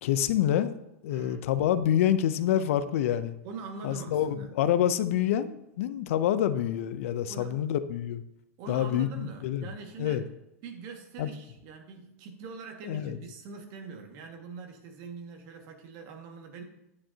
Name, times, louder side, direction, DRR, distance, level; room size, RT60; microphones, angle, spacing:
voice 1, 0.0-3.3 3.8-8.2 8.7-9.7 10.0-10.2 11.2-11.3 12.8-13.2, left 10 dB, 65° left, 13 dB, 0.6 m, -27 dB
voice 2, 1.1-1.5 3.4-4.5 7.3-7.6 8.6-10.3 10.6-16.6, right 4 dB, 50° right, 3 dB, 1.8 m, -43 dB
9.5 x 8.7 x 2.8 m, 0.86 s
hypercardioid pair, 100°, 8 cm